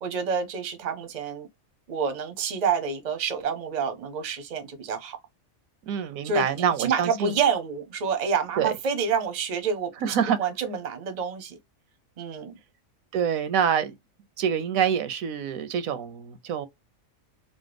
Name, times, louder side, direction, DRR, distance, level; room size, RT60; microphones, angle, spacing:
voice 1, 0.0-1.5 1.9-5.2 6.2-11.6 12.2-12.5, right 6 dB, 45° right, 0.6 m, -28 dB
voice 2, 5.9-7.3 8.6-8.7 10.0-10.4 13.1-13.9 14.4-16.7, right 8 dB, 80° right, 1.0 m, -26 dB
3.0 x 2.1 x 3.3 m
omnidirectional pair, 1.5 m